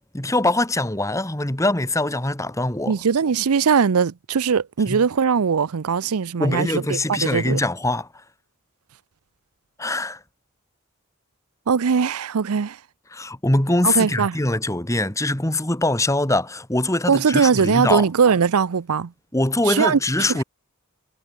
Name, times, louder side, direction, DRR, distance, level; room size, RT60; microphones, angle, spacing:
voice 1, 0.1-3.0 4.9-5.0 6.4-8.1 9.8-10.2 13.1-18.1 19.3-20.4, left 2 dB, 15° left, 1.8 m, -23 dB
voice 2, 2.9-7.6 11.7-12.8 13.8-14.4 17.1-19.1 19.7-20.0 20.3-20.4, right 6 dB, 85° right, 0.6 m, -20 dB
head